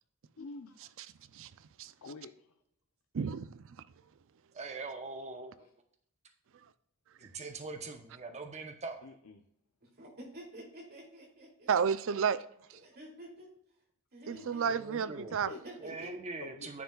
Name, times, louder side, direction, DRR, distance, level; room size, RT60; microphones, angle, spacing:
voice 1, 0.4-0.8 2.0-2.3 9.0-9.4 14.3-14.7 15.4-15.6 16.4-16.8, left 3 dB, 75° left, 0.6 m, -47 dB
voice 2, 3.1-3.8 11.7-12.4 12.7-12.8 14.3-15.5, right 7 dB, 65° right, 0.4 m, -31 dB
voice 3, 4.5-5.7 7.2-9.0 14.7-15.4 15.8-16.8, right 3 dB, 30° right, 0.8 m, -42 dB
voice 4, 9.8-11.7 12.8-13.5 14.1-14.7 15.5-16.2, right 1 dB, 45° right, 2.8 m, -49 dB
9.8 x 6.9 x 2.3 m
head